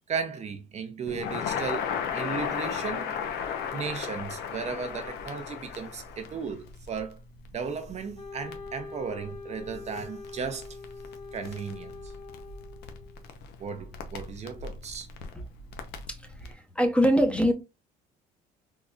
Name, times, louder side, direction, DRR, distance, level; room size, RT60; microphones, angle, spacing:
voice 1, 0.1-3.1 3.7-7.2 7.5-10.8 11.3-11.9 13.6-15.1, right 6 dB, 40° right, 0.6 m, -35 dB
Crackle, 1.1-16.5, left 7 dB, 80° left, 0.7 m, -37 dB
Wind instrument woodwind instrument, 8.1-13.3, left 4 dB, 40° left, 2.2 m, -44 dB
voice 2, 16.1-17.5, equal, 5° left, 0.8 m, -24 dB
3.8 x 3.1 x 2.3 m
cardioid pair, 110°, 17 cm